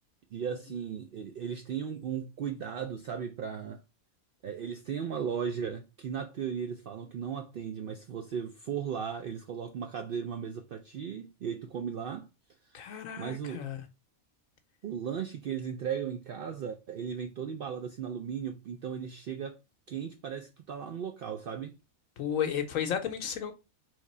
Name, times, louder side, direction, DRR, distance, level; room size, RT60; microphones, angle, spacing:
voice 1, 0.3-3.8 4.4-12.3 12.6-12.8 13.2-13.6 14.8-19.6 19.9-21.7, right 7 dB, 75° right, 0.5 m, -36 dB
voice 2, 12.7-13.8 22.2-23.5, left 8 dB, 75° left, 1.0 m, -33 dB
3.6 x 3.2 x 4.1 m
omnidirectional pair, 1.5 m